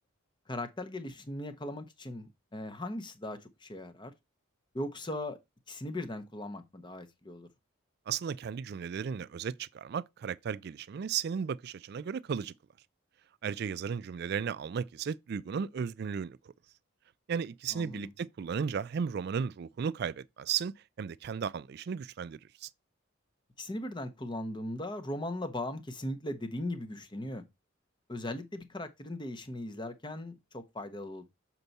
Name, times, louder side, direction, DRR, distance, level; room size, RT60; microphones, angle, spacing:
voice 1, 0.5-4.1 4.7-5.4 5.7-7.5 17.7-18.1 23.6-27.4 28.1-31.2, left 1 dB, 20° left, 0.8 m, -38 dB
voice 2, 8.1-12.5 13.4-16.4 17.3-22.7, right 7 dB, 50° right, 0.3 m, -35 dB
6.8 x 4.5 x 4.0 m
head